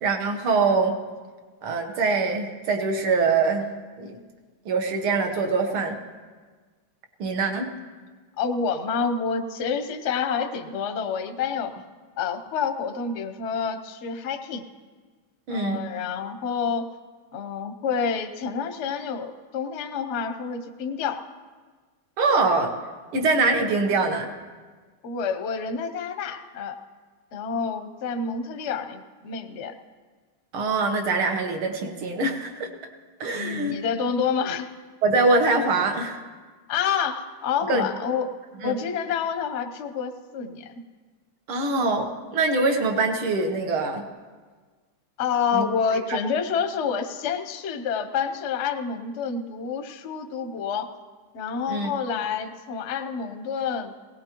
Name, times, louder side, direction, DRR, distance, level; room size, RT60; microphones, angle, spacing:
voice 1, 0.0-0.9 1.6-3.7 4.0-4.2 4.7-6.0 7.2-7.7 15.5-15.8 22.2-22.7 23.1-24.3 30.5-32.7 33.2-33.8 35.0-36.2 37.7-37.9 38.6-38.8 41.5-44.0 45.5-45.7 51.7-51.9, right 3 dB, 80° right, 4 dB, 2.1 m, -23 dB
voice 2, 8.4-11.7 12.2-14.7 15.5-16.9 17.3-21.2 25.0-26.8 27.3-29.7 33.3-34.7 36.7-38.3 38.6-40.7 45.2-50.9 51.3-53.9, left 6 dB, 60° left, 7 dB, 0.7 m, -28 dB
19.5 x 17.5 x 3.0 m, 1.4 s
omnidirectional pair, 2.3 m